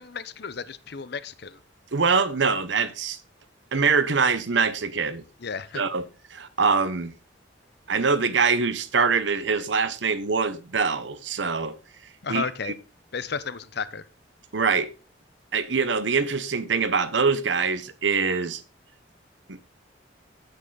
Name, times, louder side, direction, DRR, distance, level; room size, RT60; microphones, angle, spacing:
voice 1, 0.0-1.6 5.4-5.8 12.2-12.7 13.1-14.0, left 5 dB, 65° left, 0.7 m, -33 dB
voice 2, 1.9-3.2 3.7-5.2 5.7-6.0 6.3-7.1 7.9-11.8 12.3-12.7 14.5-14.9 15.5-18.6 19.5-19.6, right 5 dB, 75° right, 0.9 m, -24 dB
8.6 x 8.0 x 3.9 m
head